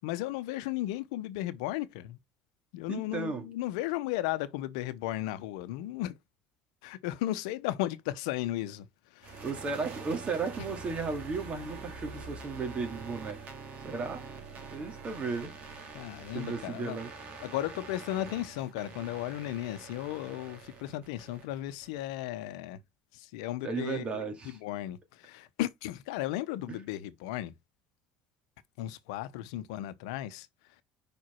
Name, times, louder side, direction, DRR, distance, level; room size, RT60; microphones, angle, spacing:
voice 1, 0.0-2.2 2.7-6.2 6.8-8.9 9.1-9.4 15.9-17.0 17.4-22.8 23.1-27.5 28.8-30.5, left 14 dB, 80° left, 0.7 m, -35 dB
voice 2, 2.9-3.5 9.4-13.4 13.8-14.2 14.7-15.5 16.3-17.1 23.6-24.6 26.7-26.8, right 4 dB, 35° right, 2.3 m, -35 dB
sound 1, 9.2-22.0, right 4 dB, 55° right, 2.6 m, -45 dB
5.2 x 4.6 x 4.5 m
supercardioid pair, 80°, 3 cm